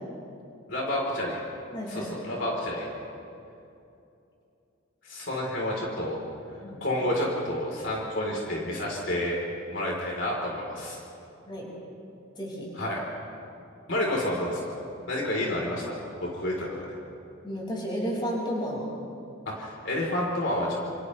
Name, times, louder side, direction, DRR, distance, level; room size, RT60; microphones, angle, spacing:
voice 1, 0.7-1.4 1.9-2.9 5.0-6.2 6.8-9.4 9.7-11.0 12.7-13.0 13.9-14.8 15.1-16.9 19.5-20.8, left 1 dB, 60° left, -3 dB, 3.8 m, -29 dB
voice 2, 1.7-2.1 6.6-6.8 11.4-11.7 12.4-12.7 17.4-18.8, equal, 25° left, -4 dB, 5.5 m, -32 dB
28.5 x 28.0 x 3.3 m, 2.7 s
head